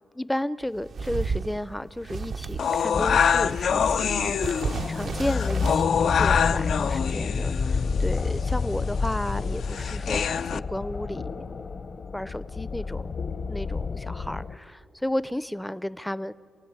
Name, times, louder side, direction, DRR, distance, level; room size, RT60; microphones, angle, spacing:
voice 1, 0.1-11.3 12.1-13.1 13.5-16.3, left 1 dB, 5° left, 17 dB, 0.5 m, -33 dB
sound 1, 0.6-3.0 3.3-5.9, right 5 dB, 60° right, 0.6 m, -33 dB
sound 2, 2.6-10.6, left 7 dB, 70° left, 0.5 m, -26 dB
sound 3, 2.9-14.6, left 4 dB, 50° left, 0.9 m, -30 dB
27.5 x 16.5 x 9.5 m, 2.6 s
cardioid pair, 90°, 0 cm